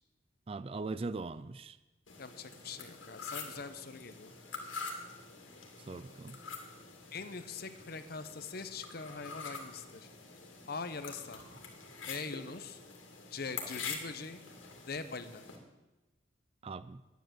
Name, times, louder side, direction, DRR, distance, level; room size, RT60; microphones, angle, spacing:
voice 1, 0.5-1.8 5.8-6.4 16.6-17.0, right 3 dB, 30° right, 15 dB, 0.3 m, -40 dB
sound 1, 2.1-15.6, left 4 dB, 80° left, 2.3 m, -46 dB
voice 2, 2.2-4.3 7.1-10.1 10.7-11.4 12.1-12.8 13.3-14.4 14.9-15.4, left 4 dB, 50° left, 11 dB, 0.8 m, -42 dB
10.5 x 9.3 x 7.5 m, 1.1 s
head